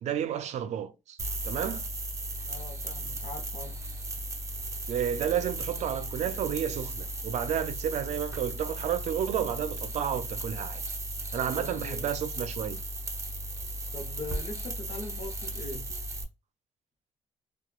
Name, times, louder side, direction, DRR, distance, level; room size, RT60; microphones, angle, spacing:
voice 1, 0.0-1.2 1.4-1.8 4.9-10.8 11.3-12.8, right 9 dB, 65° right, 0.5 m, -31 dB
sound 1, 1.2-16.2, right 1 dB, 25° right, 0.7 m, -36 dB
voice 2, 2.4-3.8 11.4-12.1 13.9-15.9, left 2 dB, 55° left, 0.9 m, -41 dB
3.0 x 2.3 x 2.2 m
cardioid pair, 115°, 12 cm